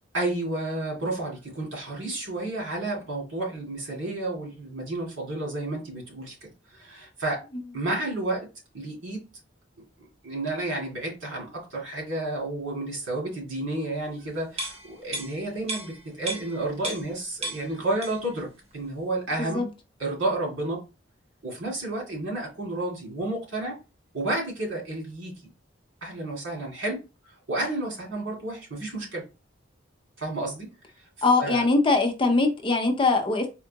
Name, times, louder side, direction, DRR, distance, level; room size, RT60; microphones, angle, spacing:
voice 1, 0.1-7.4 7.7-8.5 8.7-9.2 10.2-18.5 18.7-19.7 20.0-20.8 21.4-23.8 24.1-25.3 26.0-27.0 27.3-29.2 30.2-30.7 31.4-31.6, right 2 dB, 85° right, 2.2 m, -31 dB
sound 1, 14.5-17.2 17.4-18.4 18.7-18.8, right 2 dB, 35° right, 1.0 m, -35 dB
voice 2, 31.2-33.5, left 3 dB, 25° left, 0.5 m, -22 dB
4.4 x 2.4 x 2.8 m
head